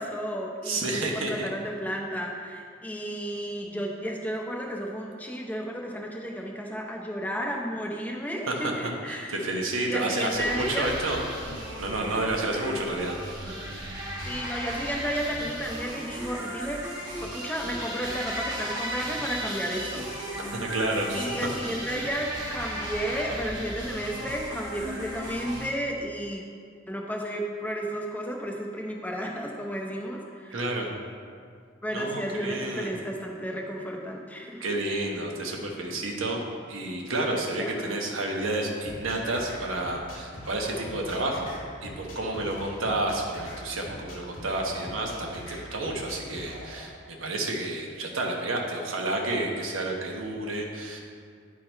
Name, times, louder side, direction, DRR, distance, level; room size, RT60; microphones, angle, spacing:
voice 1, 0.0-9.4 9.9-11.0 14.2-16.8 17.2-20.1 21.1-26.4 26.9-30.6 31.8-34.6 37.6-37.9 45.5-45.6, equal, 10° left, -1 dB, 0.7 m, -33 dB
voice 2, 0.6-1.5 8.5-8.7 9.0-11.2 11.4-13.7 20.4-21.3 30.5-30.9 31.9-32.9 34.6-41.5 41.8-51.0, right 2 dB, 85° right, 0 dB, 1.1 m, -30 dB
sound 1, 10.3-25.7, equal, 20° right, 1.2 m, -36 dB
sound 2, 38.8-46.8, equal, 75° left, 1.4 m, -43 dB
10.5 x 3.8 x 4.4 m, 2.1 s
head